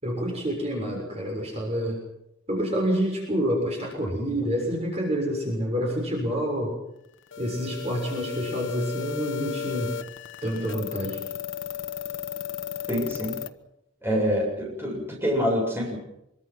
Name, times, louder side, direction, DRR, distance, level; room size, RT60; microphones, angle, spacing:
voice 1, 0.0-2.0 2.5-6.7 7.4-9.9 10.4-11.2, equal, 35° right, 0 dB, 6.6 m, -28 dB
sound 1, 7.3-13.5, left 8 dB, 75° left, 1.3 m, -35 dB
voice 2, 12.9-13.4 14.0-16.0, equal, 10° right, -1 dB, 7.6 m, -26 dB
25.5 x 23.5 x 6.0 m, 0.84 s
head